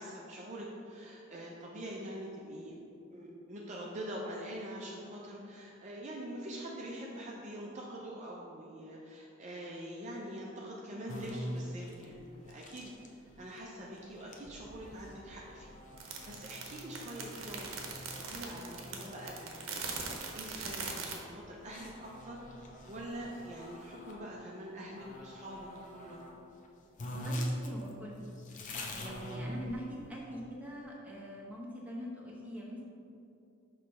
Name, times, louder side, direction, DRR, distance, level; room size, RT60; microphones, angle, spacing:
voice 1, 0.0-2.8 3.1-17.9 18.2-22.4 22.9-25.7 25.9-26.2 29.3-29.5, right 1 dB, 35° right, -3 dB, 0.6 m, -44 dB
sound 1, 11.1-24.2 24.9-26.4 26.6-26.7 27.0-30.1, equal, 40° left, 0.6 m, -44 dB
sound 2, 16.0-21.2, right 5 dB, 70° right, 0.9 m, -41 dB
voice 2, 27.1-28.2 28.9-32.8, equal, 10° right, -4 dB, 1.0 m, -43 dB
6.3 x 3.2 x 5.4 m, 2.7 s
head